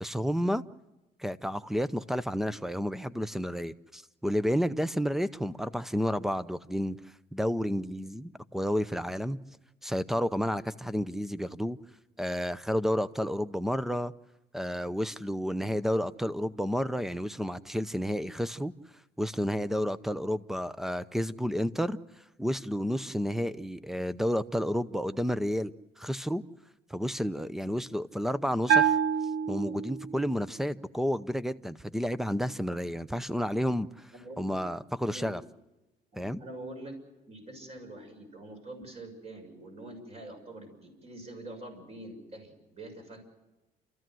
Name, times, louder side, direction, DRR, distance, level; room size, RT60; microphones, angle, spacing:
voice 1, 0.0-0.6 1.2-7.0 7.3-9.4 9.8-11.8 12.2-14.1 14.5-18.7 19.2-22.0 22.4-26.4 26.9-29.0 29.5-34.1 34.4-35.4 36.2-36.4, equal, ahead, 15 dB, 0.7 m, -31 dB
Bell, 28.7-30.3, right 7 dB, 65° right, 1.0 m, -26 dB
voice 2, 34.1-34.5 35.1-35.3 36.1-37.0 37.3-43.2, right 1 dB, 40° right, 4 dB, 6.6 m, -45 dB
30.0 x 14.0 x 7.7 m, 1.1 s
cardioid pair, 110°, 17 cm